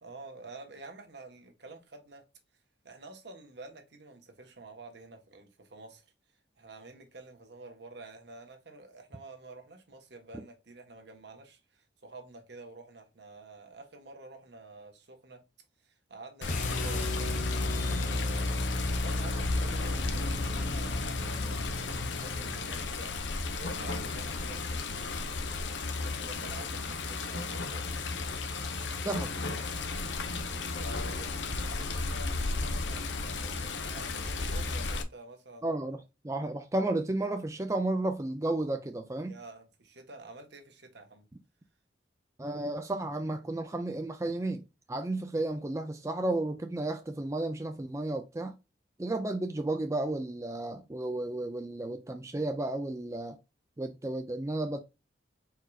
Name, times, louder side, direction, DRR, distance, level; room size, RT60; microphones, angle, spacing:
voice 1, 0.0-2.2 2.8-6.1 6.6-15.4 15.8-25.7 26.0-28.2 30.6-35.7 39.2-41.3, right 2 dB, 70° right, 1.2 m, -49 dB
Water, 16.4-35.0, left 3 dB, 80° left, 0.8 m, -34 dB
sound 1, 16.5-22.6, left 1 dB, 40° left, 0.7 m, -33 dB
voice 2, 35.6-36.0 36.2-39.4 42.4-48.5 49.0-53.4 53.8-54.8, right 2 dB, 15° right, 0.4 m, -33 dB
4.6 x 4.5 x 2.3 m
head